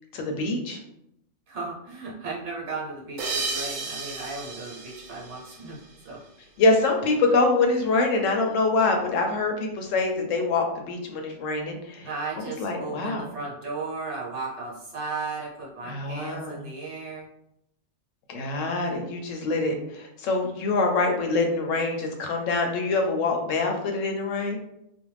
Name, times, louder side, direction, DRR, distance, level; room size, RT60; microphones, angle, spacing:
voice 1, 0.1-0.8 6.6-12.1 12.6-13.3 15.8-16.6 18.3-24.6, left 3 dB, 80° left, 3 dB, 0.9 m, -25 dB
voice 2, 1.5-5.8 6.0-6.2 12.0-17.3, right 3 dB, 65° right, -3 dB, 1.1 m, -35 dB
sound 1, 3.2-6.3, right 4 dB, 85° right, 1.0 m, -34 dB
2.5 x 2.2 x 3.1 m, 0.80 s
omnidirectional pair, 1.3 m